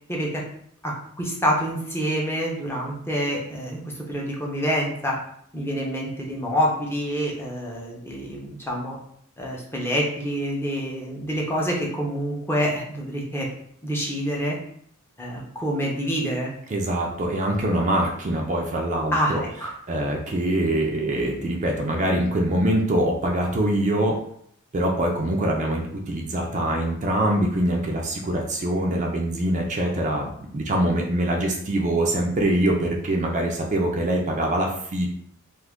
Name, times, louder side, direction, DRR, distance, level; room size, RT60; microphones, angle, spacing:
voice 1, 0.1-0.4 0.8-5.2 5.5-9.0 9.4-13.5 13.8-14.6 15.2-16.5 19.1-19.7, equal, 10° left, -3 dB, 0.6 m, -27 dB
voice 2, 16.7-19.4 19.9-24.2 24.7-35.2, right 1 dB, 35° right, 0 dB, 0.4 m, -24 dB
2.5 x 2.4 x 3.5 m, 0.67 s
head